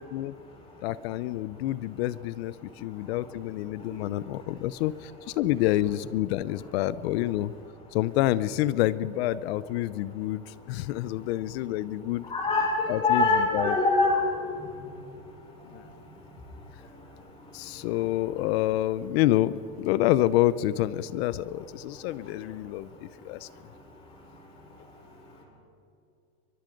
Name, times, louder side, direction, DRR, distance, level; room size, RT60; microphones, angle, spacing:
voice 1, 0.8-5.1 5.4-7.5 7.9-12.3 12.9-13.2 13.5-13.7 15.7-15.8 17.5-23.5, left 14 dB, 45° left, 18 dB, 0.7 m, -28 dB
voice 2, 12.3-14.3, left 3 dB, 10° left, -1 dB, 5.9 m, -23 dB
23.5 x 22.5 x 5.2 m, 2.7 s
supercardioid pair, 155°, 43 cm